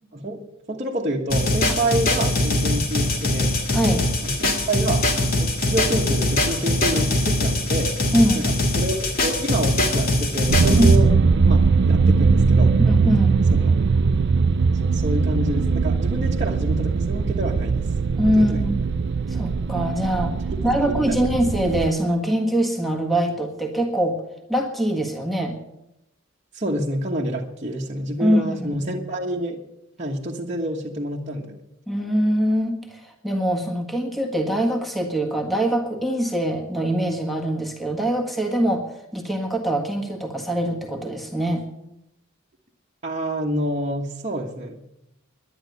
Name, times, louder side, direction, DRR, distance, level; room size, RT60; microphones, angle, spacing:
voice 1, 0.1-0.4 0.7-3.5 4.2-7.9 8.3-11.1 11.4-12.7 13.5-13.8 14.8-17.9 18.3-18.7 26.5-29.6 30.0-31.6 43.0-44.8, right 1 dB, 35° right, -4 dB, 1.3 m, -28 dB
sound 1, 1.3-10.9, left 1 dB, 45° left, 2.2 m, -22 dB
voice 2, 3.7-4.0 8.1-8.5 10.8-10.9 12.8-13.4 18.2-18.8 19.3-20.4 20.6-24.2 24.5-25.6 28.2-28.8 31.9-41.6, equal, ahead, 1 dB, 1.6 m, -23 dB
sound 2, 10.5-21.9, right 4 dB, 55° right, 0.4 m, -20 dB
11.0 x 10.0 x 9.3 m, 0.85 s
head